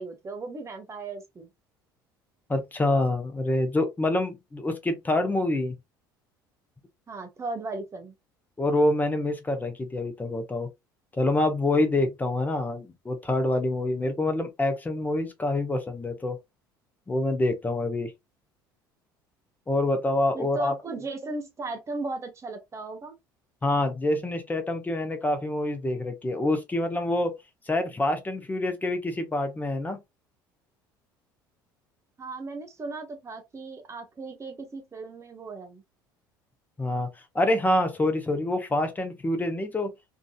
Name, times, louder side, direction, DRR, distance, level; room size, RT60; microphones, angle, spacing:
voice 1, 0.0-1.5 7.1-8.1 20.3-23.2 32.2-35.8, right 3 dB, 25° right, 1.3 m, -36 dB
voice 2, 2.5-5.7 8.6-10.7 11.1-16.4 17.1-18.1 19.7-20.7 23.6-27.3 27.7-30.0 36.8-37.1 37.3-39.9, left 1 dB, 15° left, 1.0 m, -26 dB
3.8 x 2.6 x 2.3 m
figure-of-eight pair, 60°, 11 cm